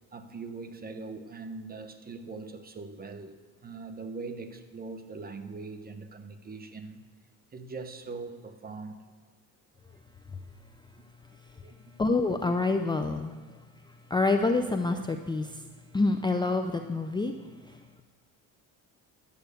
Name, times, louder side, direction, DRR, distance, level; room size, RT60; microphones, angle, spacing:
voice 1, 0.1-7.0 7.5-9.0 11.6-11.7, right 4 dB, 25° right, 7 dB, 1.1 m, -41 dB
voice 2, 12.0-13.4 14.1-15.7 15.9-17.3 17.7-18.0, left 3 dB, 10° left, 6 dB, 0.5 m, -27 dB
11.5 x 7.8 x 6.8 m, 1.5 s
cardioid pair, 105°, 37 cm